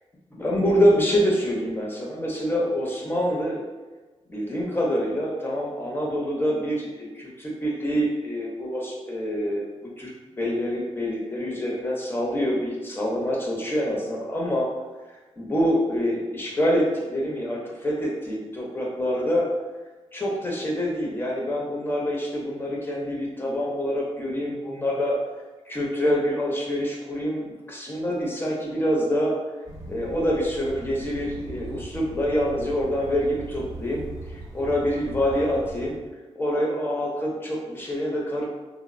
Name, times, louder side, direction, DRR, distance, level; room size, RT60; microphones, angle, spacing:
voice 1, 0.4-3.6 4.3-9.6 10.0-10.1 10.4-14.7 15.4-19.5 20.1-25.1 25.7-29.3 29.9-34.0 34.3-36.0 36.4-38.4, equal, 20° left, -3 dB, 0.6 m, -26 dB
sound 1, 29.7-36.1, right 2 dB, 25° right, 0.7 m, -40 dB
2.9 x 2.0 x 2.4 m, 1.2 s
wide cardioid pair, 100°, 12 cm